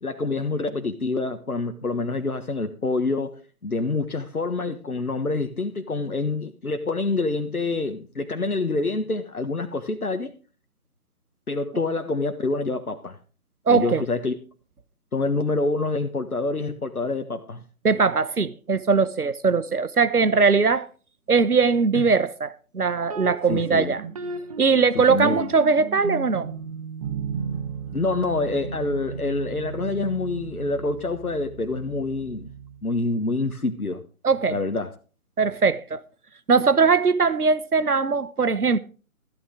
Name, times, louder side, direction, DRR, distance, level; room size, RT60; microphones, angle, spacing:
voice 1, 0.0-10.3 11.5-13.2 13.7-14.3 15.1-17.6 21.9-22.0 23.5-23.9 24.9-25.5 27.9-32.5 32.8-34.0 34.5-34.9, left 3 dB, 75° left, 1.5 m, -27 dB
voice 2, 13.7-14.0 17.8-20.9 21.3-24.0 24.6-26.5 34.2-34.6 35.4-36.0 36.5-38.8, right 5 dB, 80° right, 1.1 m, -20 dB
sound 1, 23.0-32.8, right 5 dB, 25° right, 1.2 m, -35 dB
14.0 x 12.0 x 3.7 m
figure-of-eight pair, 145°, 44 cm